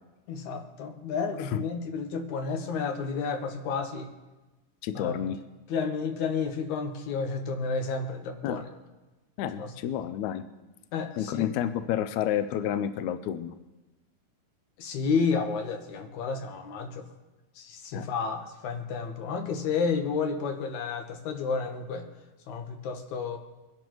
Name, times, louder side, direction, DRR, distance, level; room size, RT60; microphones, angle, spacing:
voice 1, 0.3-4.1 4.9-5.2 5.7-8.6 9.6-9.7 10.9-11.5 14.8-17.0 17.6-22.1 22.5-23.4, left 5 dB, 65° left, 4 dB, 2.4 m, -31 dB
voice 2, 4.8-5.4 8.4-8.6 9.4-10.4 11.2-13.6 17.9-18.1, left 10 dB, 85° left, 11 dB, 1.7 m, -30 dB
23.0 x 11.5 x 3.1 m, 1.1 s
omnidirectional pair, 3.9 m